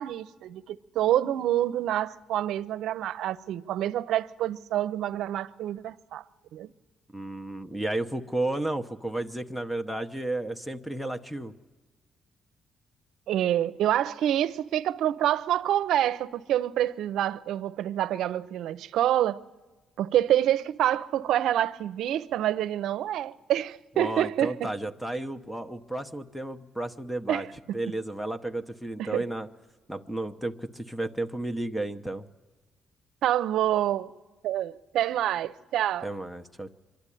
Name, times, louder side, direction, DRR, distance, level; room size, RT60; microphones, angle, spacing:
voice 1, 0.0-6.2 6.5-6.7 13.3-19.4 20.0-24.7 27.3-27.8 29.0-29.2 33.2-34.1 34.4-36.1, right 12 dB, 80° right, 0.6 m, -27 dB
voice 2, 7.1-11.5 24.0-27.5 27.7-29.5 29.9-32.3 36.0-36.8, right 1 dB, 5° left, 0.9 m, -33 dB
24.5 x 12.0 x 10.0 m
cardioid pair, 90°, 0 cm